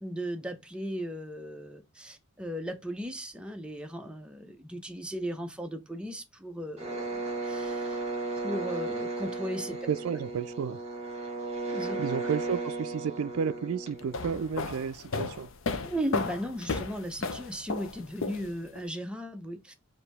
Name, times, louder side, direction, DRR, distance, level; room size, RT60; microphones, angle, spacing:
voice 1, 0.0-8.0 8.4-9.8 11.7-12.0 15.8-19.7, equal, 5° right, 0.6 m, -36 dB
sound 1, 6.8-14.5, right 2 dB, 30° right, 1.3 m, -35 dB
voice 2, 9.9-10.8 12.0-15.5, right 7 dB, 80° right, 0.4 m, -32 dB
sound 2, 14.0-18.8, left 4 dB, 65° left, 0.6 m, -34 dB
4.8 x 2.7 x 3.3 m
head